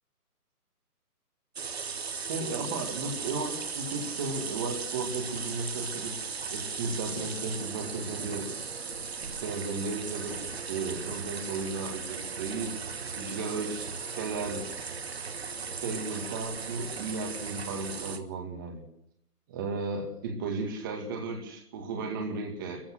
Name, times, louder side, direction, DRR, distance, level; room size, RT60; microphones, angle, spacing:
sound 1, 1.5-18.2, right 5 dB, 40° right, 1.7 m, -37 dB
voice 1, 2.3-6.2 6.5-8.5 9.2-14.7 15.8-18.8 19.5-22.9, right 3 dB, 15° right, 3 dB, 2.1 m, -35 dB
30.0 x 15.0 x 6.2 m, 0.74 s
figure-of-eight pair, 165°, 46 cm